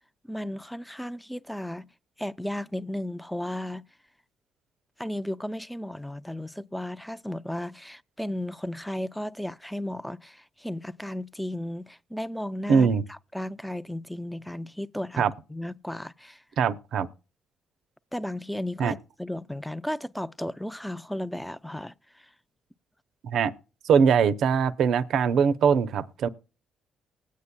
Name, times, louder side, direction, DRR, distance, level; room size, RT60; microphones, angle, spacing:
voice 1, 0.3-1.9 2.2-3.8 5.0-15.2 15.5-16.4 18.1-22.3, left 1 dB, 5° left, 0.4 m, -34 dB
voice 2, 12.7-13.0 15.2-15.3 16.6-17.1 18.8-18.9 23.2-23.5 23.8-26.3, right 6 dB, 75° right, 0.6 m, -22 dB
20.0 x 8.4 x 2.2 m
cardioid pair, 90°, 0 cm